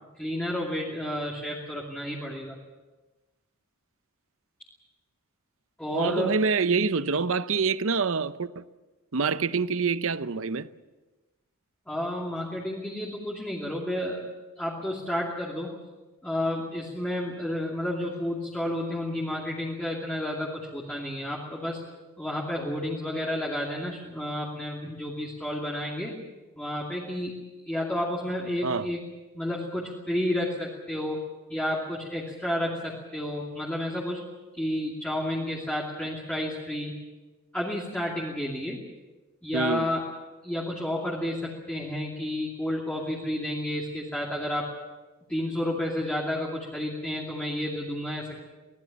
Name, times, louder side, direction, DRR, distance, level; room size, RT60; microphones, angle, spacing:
voice 1, 0.2-2.6 5.8-6.3 11.9-14.3 14.6-15.7 16.2-21.8 22.2-26.2 26.6-29.0 29.3-31.2 31.5-34.2 34.6-36.9 37.5-38.8 39.4-40.1 40.4-44.7 45.3-48.4, left 1 dB, 5° left, 2.6 m, -31 dB
voice 2, 5.9-8.6 9.1-10.7 28.6-28.9 39.5-39.9, right 5 dB, 60° right, 0.7 m, -26 dB
24.5 x 19.5 x 7.3 m
head